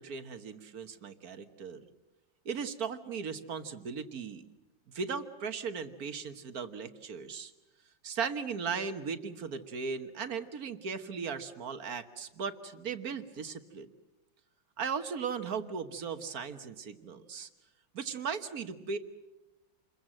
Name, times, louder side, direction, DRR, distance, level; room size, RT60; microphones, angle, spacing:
voice 1, 0.0-1.8 2.4-4.4 4.9-7.5 8.0-13.9 14.8-17.5 17.9-19.0, right 6 dB, 50° right, 10 dB, 1.6 m, -37 dB
28.0 x 22.0 x 7.7 m, 1.0 s
omnidirectional pair, 2.1 m